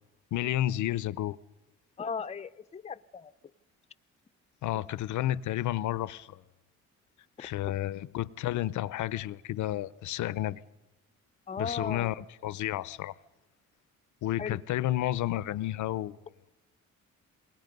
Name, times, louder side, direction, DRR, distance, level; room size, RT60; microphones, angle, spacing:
voice 1, 0.3-1.4 4.6-6.4 7.4-10.6 11.6-13.1 14.2-16.2, left 14 dB, 75° left, 0.7 m, -31 dB
voice 2, 2.0-3.3 7.4-7.5 11.5-12.1 14.4-14.6, left 5 dB, 20° left, 0.6 m, -37 dB
28.0 x 20.5 x 5.3 m
cardioid pair, 90°, 30 cm